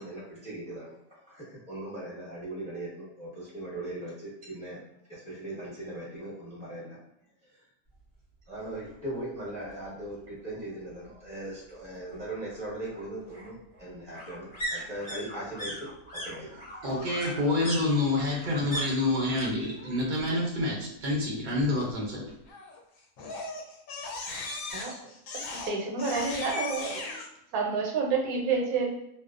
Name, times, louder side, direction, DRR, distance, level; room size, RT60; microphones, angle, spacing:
voice 1, 0.0-4.8 5.1-7.0 7.4-7.6 8.5-16.5, right 1 dB, 10° left, -6 dB, 0.5 m, -39 dB
sound 1, 8.6-8.7 9.1-9.2 9.4-10.4 11.7-19.5 19.7-20.3 20.6-21.6 21.9-22.0, equal, 30° left, 0.9 m, -40 dB
Crying sobbing, 16.8-17.8 22.5-22.8 23.2-27.3, left 3 dB, 70° left, 0.9 m, -38 dB
voice 2, 16.8-22.3, left 2 dB, 60° right, -3 dB, 0.5 m, -28 dB
voice 3, 25.7-27.2 27.5-28.9, right 4 dB, 80° right, 1 dB, 1.1 m, -29 dB
2.5 x 2.0 x 2.4 m, 0.81 s
omnidirectional pair, 1.6 m